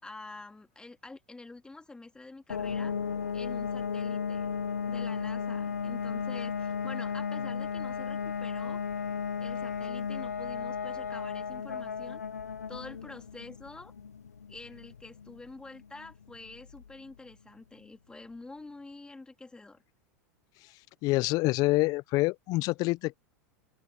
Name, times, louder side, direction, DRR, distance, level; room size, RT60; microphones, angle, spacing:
voice 1, 0.0-2.9 3.3-4.5 4.9-8.8 9.4-12.2 12.7-13.9 14.5-19.8, left 3 dB, 10° left, 2.5 m, -47 dB
sound 1, 2.5-17.1, left 6 dB, 85° left, 0.8 m, -35 dB
voice 2, 21.0-23.2, left 21 dB, 50° left, 0.8 m, -26 dB
open air
hypercardioid pair, 90°, 8 cm